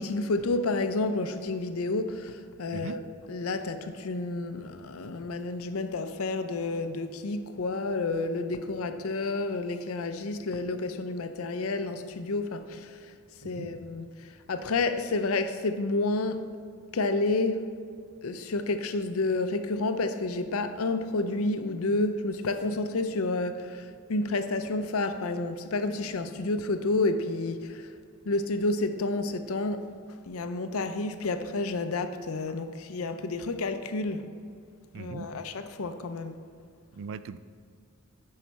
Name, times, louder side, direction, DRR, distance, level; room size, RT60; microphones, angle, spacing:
voice 1, 0.0-3.0 3.3-13.1 13.4-16.4 16.9-17.7 18.2-27.9 28.3-29.8 30.2-34.3 34.9-36.4, left 2 dB, 70° left, 9 dB, 0.6 m, -30 dB
voice 2, 34.9-35.3 36.9-37.4, right 5 dB, 60° right, 14 dB, 0.3 m, -39 dB
9.4 x 5.7 x 4.1 m, 2.2 s
head